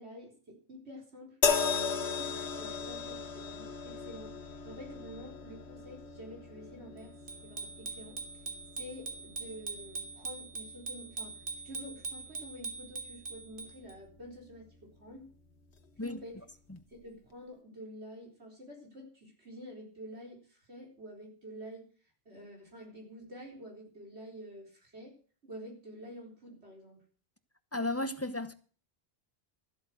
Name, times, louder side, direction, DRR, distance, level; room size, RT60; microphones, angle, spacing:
voice 1, 0.0-1.4 1.6-4.3 4.6-7.1 7.4-8.4 8.8-11.4 11.6-15.3 16.0-16.4 16.9-21.9 22.3-25.1 25.4-27.0, equal, 90° right, 4.4 m, -48 dB
sound 1, 1.4-14.8 15.7-15.9, left 6 dB, 90° left, 1.5 m, -38 dB
Bicycle bell, 7.3-13.9, right 3 dB, 55° right, 2.1 m, -42 dB
voice 2, 27.7-28.5, left 2 dB, 15° left, 0.9 m, -33 dB
13.5 x 8.1 x 7.7 m
omnidirectional pair, 1.1 m